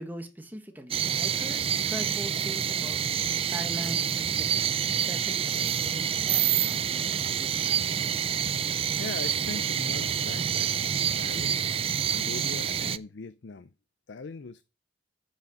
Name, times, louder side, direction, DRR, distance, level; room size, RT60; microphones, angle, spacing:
voice 1, 0.0-3.0 3.5-4.7 5.1-7.8, right 1 dB, 10° right, 1.4 m, -41 dB
sound 1, 0.9-13.0, right 8 dB, 30° right, 0.4 m, -27 dB
voice 2, 8.6-11.6 12.1-13.7 14.1-14.6, left 4 dB, 80° left, 0.5 m, -41 dB
10.0 x 5.3 x 6.4 m
head